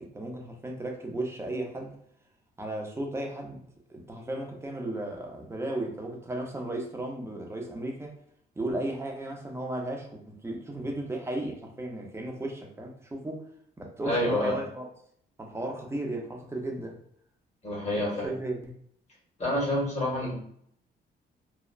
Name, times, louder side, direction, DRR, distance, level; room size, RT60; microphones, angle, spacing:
voice 1, 0.0-2.0 2.6-8.1 8.6-13.4 13.8-14.9 15.4-17.0 17.9-18.7, right 1 dB, 15° right, 0.6 m, -35 dB
voice 2, 14.0-14.5 17.6-18.3 19.4-20.3, left 1 dB, 40° left, 1.5 m, -27 dB
3.1 x 2.0 x 2.4 m
cardioid pair, 105°, 18 cm